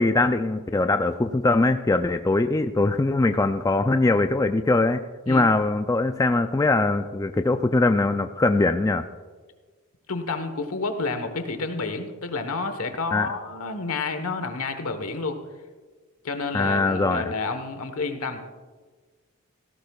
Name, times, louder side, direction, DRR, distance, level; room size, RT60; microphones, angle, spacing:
voice 1, 0.0-9.0 13.1-13.3 16.5-17.3, left 2 dB, 15° left, 7 dB, 0.3 m, -22 dB
voice 2, 10.1-15.4 16.2-18.4, left 3 dB, 75° left, 7 dB, 1.2 m, -30 dB
18.0 x 16.0 x 2.4 m, 1.4 s
head